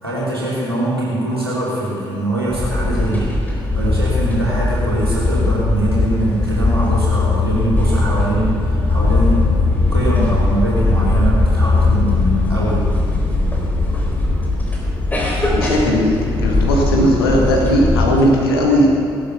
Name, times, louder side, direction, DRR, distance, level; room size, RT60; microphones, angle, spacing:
voice 1, 0.0-9.4 9.9-12.8, right 1 dB, 90° right, -7 dB, 3.3 m, -22 dB
sound 1, 2.5-18.3, left 2 dB, 15° left, 4.3 m, -18 dB
voice 2, 15.5-18.9, equal, 75° left, -1 dB, 2.2 m, -16 dB
17.0 x 12.0 x 7.0 m, 2.8 s
figure-of-eight pair, 45°, 13 cm